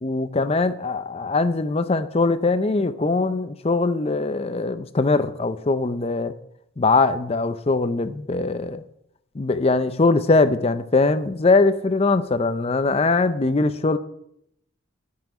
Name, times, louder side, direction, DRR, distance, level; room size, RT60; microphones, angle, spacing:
voice 1, 0.0-6.3 6.8-8.8 9.4-14.0, left 3 dB, 30° left, 12 dB, 0.5 m, -21 dB
10.5 x 5.7 x 8.8 m, 0.75 s
head